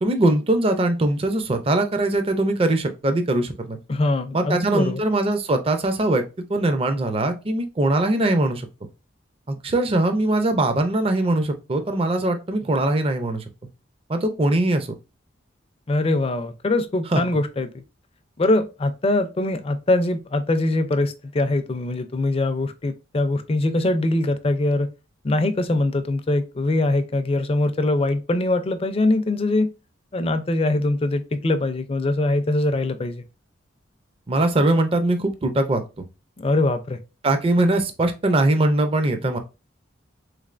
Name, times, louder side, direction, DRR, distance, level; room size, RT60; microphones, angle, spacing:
voice 1, 0.0-3.8 4.3-6.2 6.5-8.7 9.5-13.4 14.1-14.9 17.1-17.2 34.3-35.8 37.2-39.4, right 2 dB, 30° right, 0.4 m, -21 dB
voice 2, 3.9-5.0 15.9-17.8 18.4-24.9 25.2-29.7 30.1-33.2 36.4-37.0, left 2 dB, 30° left, 0.4 m, -22 dB
3.6 x 3.2 x 2.4 m
head